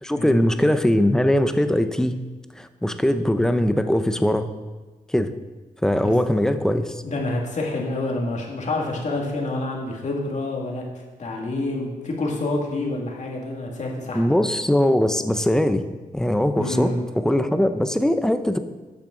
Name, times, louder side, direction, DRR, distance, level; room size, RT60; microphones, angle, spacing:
voice 1, 0.0-2.2 2.6-4.5 5.1-5.3 5.8-7.0 14.1-15.8 16.1-18.6, left 1 dB, 5° left, 10 dB, 0.6 m, -21 dB
voice 2, 7.0-14.3 16.6-17.0, left 2 dB, 55° left, -1 dB, 2.2 m, -28 dB
12.5 x 8.5 x 3.9 m, 1.3 s
wide cardioid pair, 130°, 15 cm